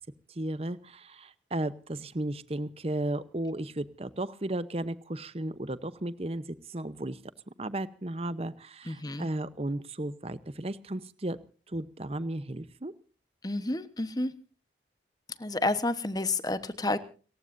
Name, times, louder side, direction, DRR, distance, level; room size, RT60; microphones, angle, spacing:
voice 1, 0.3-7.2 7.5-11.4 11.7-12.9, right 1 dB, 35° right, 15 dB, 0.9 m, -34 dB
voice 2, 8.8-9.3 13.4-14.4 15.4-17.0, left 2 dB, 20° left, 12 dB, 1.1 m, -30 dB
30.0 x 15.0 x 2.7 m, 0.39 s
head